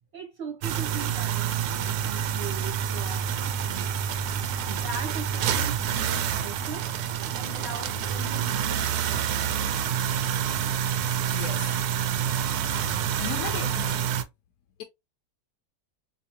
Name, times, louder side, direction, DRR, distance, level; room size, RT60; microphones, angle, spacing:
voice 1, 0.1-3.9 4.7-6.9 7.3-9.5, right 4 dB, 55° right, 1.0 m, -40 dB
sound 1, 0.6-14.2, right 9 dB, 85° right, 1.1 m, -28 dB
voice 2, 11.3-11.8 13.2-14.1, left 10 dB, 75° left, 1.1 m, -36 dB
4.2 x 2.7 x 2.9 m
omnidirectional pair, 1.6 m